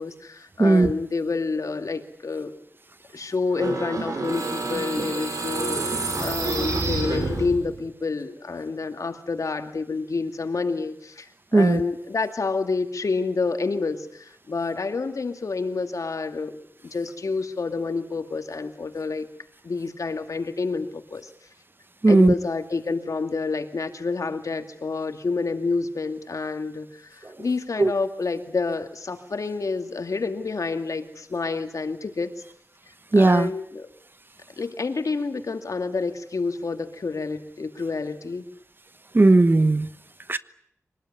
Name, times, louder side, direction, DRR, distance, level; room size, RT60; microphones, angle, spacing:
voice 1, 0.0-2.5 3.1-16.6 16.8-19.3 19.6-21.3 22.1-32.3 33.1-33.9 34.6-38.4, left 4 dB, 80° left, 7 dB, 2.4 m, -28 dB
voice 2, 0.6-0.9 11.5-11.8 22.0-22.3 27.8-27.9 33.1-33.5 39.1-39.9 40.3-40.4, right 2 dB, 40° right, 14 dB, 1.1 m, -16 dB
sound 1, 3.5-7.8, right 3 dB, 85° right, 7.0 m, -28 dB
24.5 x 19.5 x 9.8 m, 0.70 s
wide cardioid pair, 65°, 6 cm